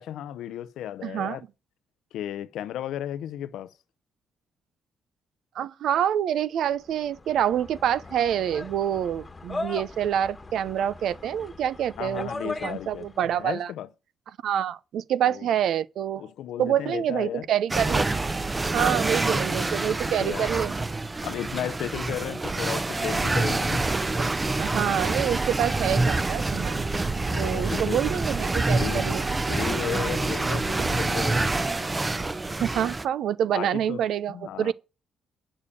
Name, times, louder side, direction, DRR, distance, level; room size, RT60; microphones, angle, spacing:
voice 1, 0.0-1.4 2.1-3.7 12.0-13.9 15.2-15.5 16.2-17.5 20.0-20.5 21.2-23.9 27.3-28.0 28.7-29.2 29.5-31.6 33.5-34.7, left 11 dB, 80° left, 0.7 m, -35 dB
voice 2, 1.0-1.4 5.6-12.3 12.6-13.7 14.4-16.2 16.6-18.0 18.7-20.7 24.1-24.3 24.6-27.0 27.4-29.2 32.6-34.7, right 10 dB, 75° right, 0.7 m, -27 dB
sound 1, 6.9-13.2, left 2 dB, 25° left, 1.3 m, -38 dB
sound 2, 17.7-33.0, right 2 dB, 20° right, 0.7 m, -26 dB
8.6 x 7.1 x 8.4 m
cardioid pair, 90°, 0 cm